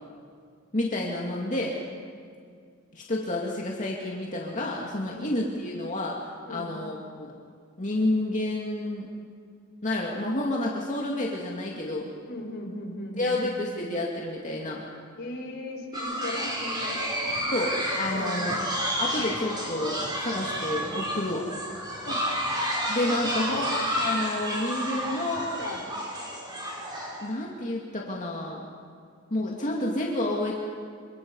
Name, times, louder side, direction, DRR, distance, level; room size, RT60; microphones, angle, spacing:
voice 1, 0.7-1.8 2.9-6.2 6.5-7.3 7.8-9.1 9.8-12.1 13.2-14.8 17.5-18.5 19.0-21.4 22.9-25.4 27.2-28.6 29.3-30.6, left 1 dB, 40° left, -3 dB, 2.5 m, -29 dB
voice 2, 12.3-13.9 15.2-17.0 18.1-18.4 22.0-22.3 23.4-23.6 25.4-25.8, left 1 dB, 55° left, -1 dB, 5.4 m, -38 dB
sound 1, 15.9-27.3, equal, 20° right, 5.5 m, -30 dB
27.5 x 25.5 x 5.6 m, 2.2 s
head